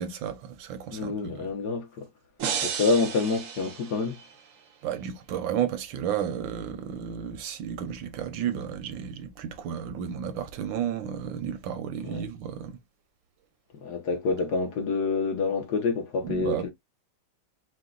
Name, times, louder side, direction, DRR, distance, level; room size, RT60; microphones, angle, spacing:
voice 1, 0.0-1.3 4.8-12.8 16.2-16.7, right 8 dB, 80° right, 1.5 m, -32 dB
voice 2, 0.9-2.1 2.6-4.2 12.0-12.3 13.7-16.7, left 4 dB, 60° left, 1.5 m, -27 dB
sound 1, 2.4-4.5, right 7 dB, 60° right, 0.9 m, -33 dB
4.6 x 2.3 x 3.8 m
omnidirectional pair, 2.1 m